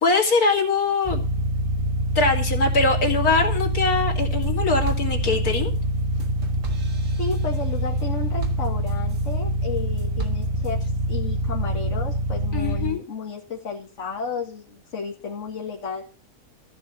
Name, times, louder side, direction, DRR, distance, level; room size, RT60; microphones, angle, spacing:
voice 1, 0.0-1.2 2.1-5.7 12.5-13.0, left 3 dB, 75° left, 0 dB, 3.2 m, -22 dB
sound 1, 1.1-12.9, right 1 dB, 25° right, 1.4 m, -25 dB
sound 2, 4.0-4.5 4.8-9.4 9.8-10.7, right 4 dB, 55° right, 2.2 m, -37 dB
voice 2, 7.2-10.8 11.1-16.0, left 4 dB, 55° left, -2 dB, 2.2 m, -32 dB
14.5 x 5.7 x 7.8 m, 0.36 s
omnidirectional pair, 1.6 m